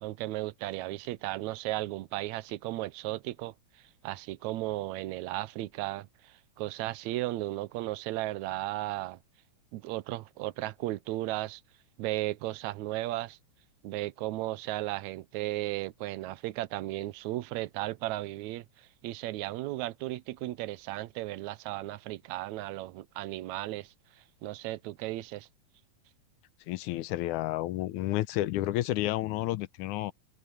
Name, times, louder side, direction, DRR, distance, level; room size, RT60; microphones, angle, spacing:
voice 1, 0.0-9.2 9.7-11.6 12.0-13.4 13.8-25.5, right 17 dB, 80° right, 2.1 m, -35 dB
voice 2, 26.7-30.1, left 15 dB, 90° left, 2.2 m, -31 dB
omnidirectional pair, 3.4 m